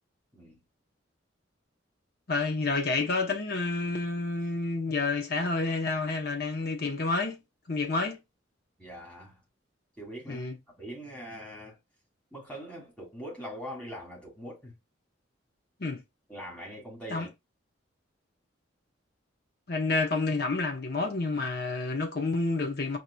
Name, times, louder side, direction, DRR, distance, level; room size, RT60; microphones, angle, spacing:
voice 1, 2.3-7.4 7.7-8.2 10.3-10.6 15.8-16.0 17.1-17.3 19.7-23.0, left 3 dB, 55° left, 0.8 m, -29 dB
voice 2, 8.8-9.4 10.0-10.5 10.8-11.8 12.3-14.7 16.3-17.3, equal, 5° left, 1.7 m, -42 dB
4.7 x 2.8 x 2.3 m
head